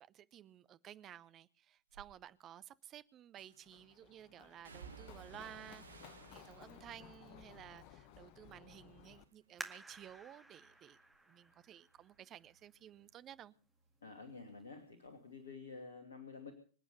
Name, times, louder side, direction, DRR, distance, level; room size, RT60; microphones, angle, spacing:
voice 1, 0.0-11.0 11.3-13.5, right 11 dB, 30° right, 0.8 m, -55 dB
sound 1, 1.9-2.1 3.4-3.8 4.6-8.9 9.2-9.8 10.2-13.5 13.8-14.9 15.2-15.3, right 5 dB, 75° right, 1.3 m, -60 dB
Run, 3.6-9.2, left 10 dB, 45° left, 1.2 m, -58 dB
sound 2, 9.6-13.0 13.6-13.7 14.3-14.7 15.1-15.2, right 2 dB, 5° right, 2.0 m, -53 dB
voice 2, 14.0-16.5, left 4 dB, 70° left, 2.7 m, -50 dB
25.5 x 8.8 x 5.7 m
figure-of-eight pair, 90°, 0 cm